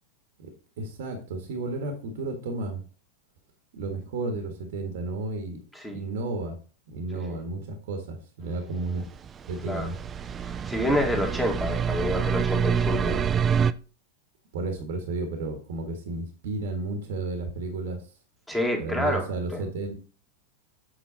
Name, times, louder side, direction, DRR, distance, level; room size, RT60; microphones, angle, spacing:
voice 1, 0.8-2.8 3.7-5.6 5.9-6.6 6.9-9.1 9.5-9.9 14.5-18.0 18.8-20.0, right 2 dB, 55° right, 5 dB, 1.6 m, -32 dB
sound 1, 9.0-13.7, right 7 dB, 25° right, 0.4 m, -27 dB
voice 2, 10.4-13.3 18.5-19.3, left 1 dB, 5° left, 1 dB, 2.1 m, -28 dB
8.2 x 5.5 x 4.0 m, 0.37 s
figure-of-eight pair, 90°, 0 cm